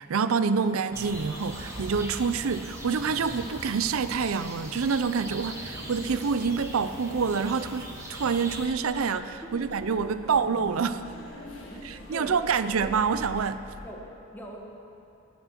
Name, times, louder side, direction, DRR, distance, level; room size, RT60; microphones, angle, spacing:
voice 1, 0.0-11.0 11.8-13.6, right 5 dB, 85° right, 12 dB, 0.5 m, -27 dB
sound 1, 0.9-13.9, left 1 dB, 65° left, 1.9 m, -46 dB
sound 2, 0.9-8.7, right 1 dB, 15° right, 1.6 m, -41 dB
sound 3, 1.3-2.1 3.1-4.1 4.3-4.5 5.0-5.1 5.3-5.4 5.8-6.5 7.6-8.1 8.9-9.2, left 1 dB, 35° left, 3.1 m, -55 dB
voice 2, 9.4-10.3 11.7-12.3 12.7-12.9 13.8-14.6, equal, 10° left, -1 dB, 1.7 m, -44 dB
20.0 x 7.2 x 5.9 m, 3.0 s
head